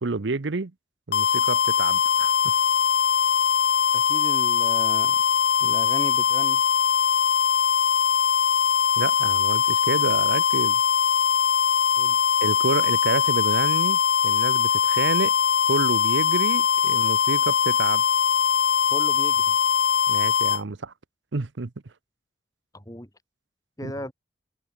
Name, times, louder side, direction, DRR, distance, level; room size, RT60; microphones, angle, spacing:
voice 1, 0.0-0.7 1.1-2.5 9.0-10.8 12.4-15.3 15.7-18.0 20.1-20.9 21.3-21.7 23.8-23.9, right 3 dB, 75° right, 0.8 m, -29 dB
sound 1, 1.1-20.6, left 7 dB, 60° left, 0.4 m, -21 dB
voice 2, 3.9-5.2 5.6-6.6 12.0-12.2 18.9-19.6 22.7-23.1 23.8-24.1, equal, 20° left, 5.4 m, -35 dB
open air
head